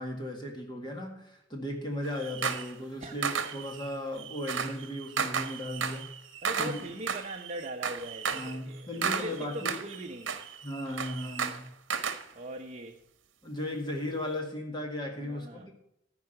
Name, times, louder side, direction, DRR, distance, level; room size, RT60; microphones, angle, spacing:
voice 1, 0.0-6.2 6.6-6.8 8.3-9.7 10.6-11.7 13.4-15.7, left 1 dB, 25° left, 1.8 m, -36 dB
sound 1, 2.0-2.8 3.2-12.2, right 6 dB, 65° right, 1.1 m, -34 dB
voice 2, 6.4-10.4 12.3-13.0 15.2-15.7, right 1 dB, 35° right, 0.8 m, -40 dB
14.5 x 4.8 x 7.7 m
head